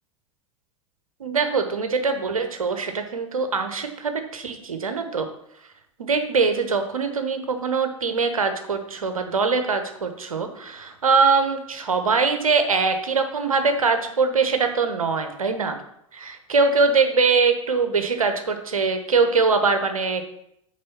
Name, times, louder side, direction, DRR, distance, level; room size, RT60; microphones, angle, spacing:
voice 1, 1.2-5.3 6.0-15.8 16.1-20.2, right 4 dB, 80° right, 6 dB, 1.2 m, -22 dB
6.7 x 5.0 x 6.9 m, 0.75 s
figure-of-eight pair, 85°, 18 cm